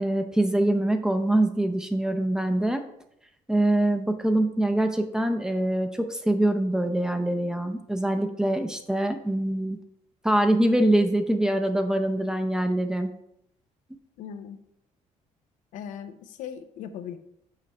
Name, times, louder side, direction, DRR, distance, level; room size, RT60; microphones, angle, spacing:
voice 1, 0.0-2.8 3.5-9.8 10.2-13.1, right 1 dB, 5° right, 6 dB, 0.6 m, -24 dB
voice 2, 14.2-14.6 15.7-17.2, left 8 dB, 85° left, 9 dB, 0.6 m, -38 dB
6.5 x 3.1 x 5.4 m, 0.77 s
cardioid pair, 115°, 13 cm